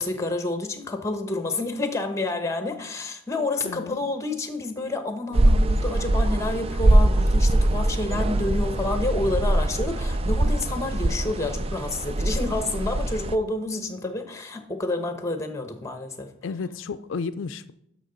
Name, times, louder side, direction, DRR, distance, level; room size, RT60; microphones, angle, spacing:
voice 1, 0.0-16.3, left 2 dB, 15° left, 0.9 m, -29 dB
voice 2, 3.6-4.0 16.4-17.7, left 5 dB, 75° left, 0.4 m, -32 dB
sound 1, 5.3-13.3, right 1 dB, 30° right, 0.3 m, -22 dB
12.5 x 5.6 x 3.9 m
head